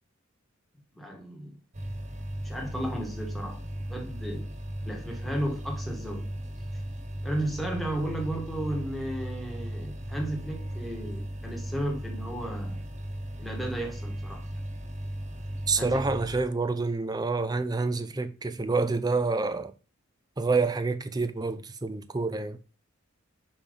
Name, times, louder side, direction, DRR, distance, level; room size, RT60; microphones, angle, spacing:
voice 1, 0.9-1.6 2.4-3.6 3.9-4.5 4.8-6.3 7.2-12.8 13.4-14.5 15.8-16.1, right 1 dB, ahead, 1.7 m, -34 dB
sound 1, 1.7-16.4, right 1 dB, 35° right, 1.0 m, -36 dB
voice 2, 15.7-19.7 20.4-22.6, right 3 dB, 20° right, 0.5 m, -28 dB
5.3 x 5.2 x 5.2 m
head